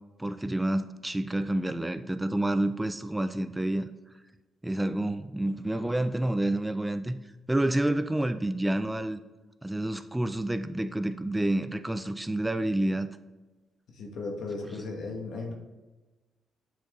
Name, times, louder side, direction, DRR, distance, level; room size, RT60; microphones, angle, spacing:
voice 1, 0.2-3.8 4.6-7.2 7.5-9.2 9.6-13.1, right 1 dB, 10° right, 11 dB, 0.3 m, -28 dB
voice 2, 13.9-15.5, left 3 dB, 70° left, 2 dB, 1.3 m, -36 dB
7.8 x 4.4 x 3.0 m, 1.1 s
cardioid pair, 90°, 0 cm